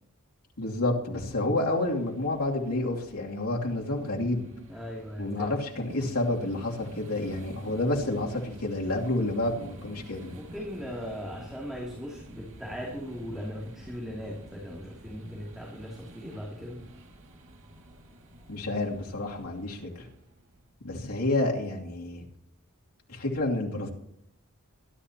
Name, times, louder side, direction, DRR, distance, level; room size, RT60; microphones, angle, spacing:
voice 1, 0.6-4.5 5.2-10.3 18.5-20.1 20.8-22.2 23.1-23.9, left 2 dB, 85° left, -2 dB, 3.0 m, -29 dB
sound 1, 1.6-20.7, right 1 dB, 60° right, 2.4 m, -49 dB
voice 2, 4.7-5.5 10.3-16.8, equal, ahead, -4 dB, 2.9 m, -38 dB
23.0 x 11.5 x 3.0 m, 0.76 s
head